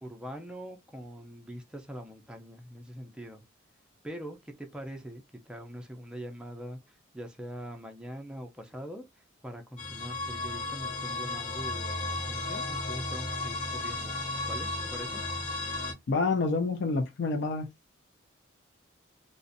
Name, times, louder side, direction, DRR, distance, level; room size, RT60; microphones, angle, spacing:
voice 1, 0.0-3.4 4.0-14.2 14.5-15.2, equal, 5° right, 0.4 m, -43 dB
sound 1, 9.8-15.9, left 2 dB, 40° left, 1.0 m, -34 dB
voice 2, 16.1-17.7, left 3 dB, 60° left, 0.4 m, -28 dB
2.5 x 2.1 x 2.5 m
head